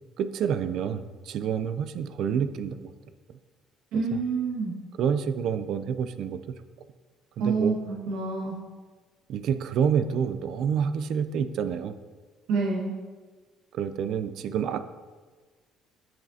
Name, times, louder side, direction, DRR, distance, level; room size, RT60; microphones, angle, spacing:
voice 1, 0.2-2.9 3.9-4.2 5.0-6.4 7.4-7.7 9.3-12.0 13.7-14.8, right 7 dB, 65° right, 11 dB, 0.4 m, -28 dB
voice 2, 3.9-4.7 7.4-8.6 12.5-12.9, right 4 dB, 85° right, -3 dB, 1.6 m, -27 dB
7.5 x 7.4 x 2.8 m, 1.4 s
cardioid pair, 100°, 0 cm